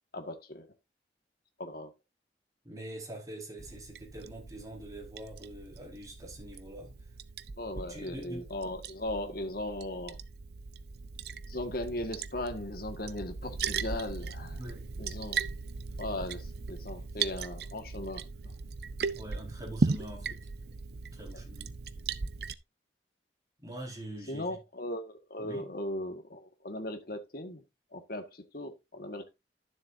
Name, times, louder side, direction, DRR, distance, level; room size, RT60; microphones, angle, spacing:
voice 1, 0.1-0.7 1.6-1.9 7.6-10.2 11.5-14.6 15.0-15.4 16.0-18.2 24.3-27.6 27.9-29.3, left 1 dB, 55° left, 1.8 m, -38 dB
voice 2, 2.6-6.9 7.7-8.5 14.5-14.9 19.1-20.4 21.0-21.7 23.6-24.6 25.4-25.7, right 1 dB, 20° right, 4.8 m, -44 dB
Liquid, 3.6-22.5, right 4 dB, 60° right, 0.6 m, -38 dB
12.5 x 7.4 x 2.7 m
head